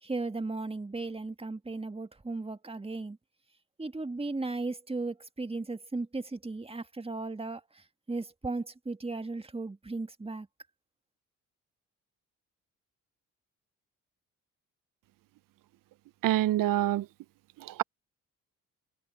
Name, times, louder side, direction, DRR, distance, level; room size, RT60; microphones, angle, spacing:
voice 1, 0.0-3.2 3.8-10.5, right 3 dB, 15° right, 1.8 m, -36 dB
voice 2, 16.2-17.1 17.7-17.8, right 14 dB, 60° right, 0.6 m, -26 dB
supercardioid pair, 60°, 37 cm